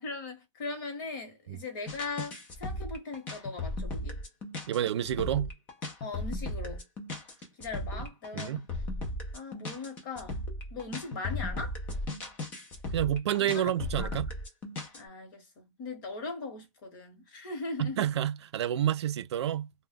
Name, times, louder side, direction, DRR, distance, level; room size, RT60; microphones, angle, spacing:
voice 1, 0.0-4.2 6.0-6.8 7.6-8.6 9.3-10.4 10.7-11.8 13.4-14.2 14.9-18.0, left 3 dB, 40° left, 1.1 m, -39 dB
sound 1, 1.9-15.0, left 2 dB, 10° left, 0.3 m, -36 dB
voice 2, 4.7-5.5 8.3-8.6 12.9-14.3 17.8-19.7, right 11 dB, 60° right, 0.4 m, -29 dB
2.2 x 2.2 x 3.5 m
hypercardioid pair, 165°, 16 cm